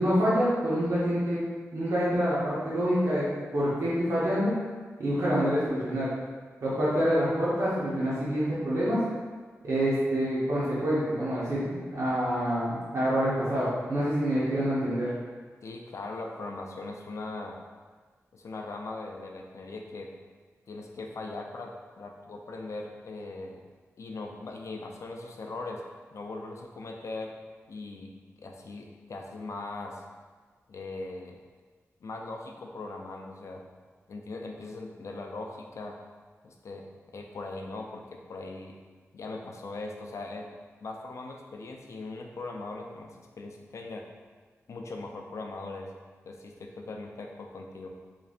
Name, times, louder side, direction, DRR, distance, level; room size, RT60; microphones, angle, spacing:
voice 1, 0.0-1.4 1.7-3.3 3.5-4.5 5.0-6.1 6.6-9.0 9.6-15.1, equal, 70° right, -9 dB, 1.0 m, -26 dB
voice 2, 15.6-17.6 18.3-20.1 20.7-23.6 24.0-25.8 26.1-27.3 27.7-28.1 28.4-30.0 30.7-31.4 32.0-33.6 34.1-36.0 36.4-36.9 37.1-38.7 39.1-40.5 40.8-44.0 44.7-45.9 46.2-47.9, left 3 dB, 65° left, 2 dB, 0.4 m, -40 dB
3.9 x 3.2 x 2.4 m, 1.4 s
wide cardioid pair, 105°, 5 cm